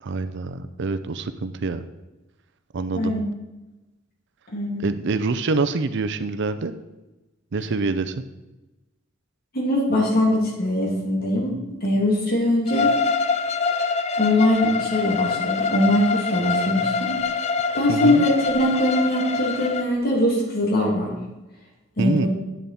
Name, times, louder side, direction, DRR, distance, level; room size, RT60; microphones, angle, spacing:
voice 1, 0.0-1.8 2.7-3.1 4.8-6.7 7.5-8.2 17.9-18.2 22.0-22.3, right 3 dB, 60° right, 11 dB, 0.5 m, -26 dB
voice 2, 4.5-4.9 9.5-12.9 14.2-17.2 17.7-21.1 22.0-22.3, left 1 dB, 50° left, -2 dB, 2.6 m, -22 dB
Bowed string instrument, 12.7-19.9, left 5 dB, 30° left, 0.4 m, -25 dB
9.4 x 7.0 x 4.3 m, 1.1 s
head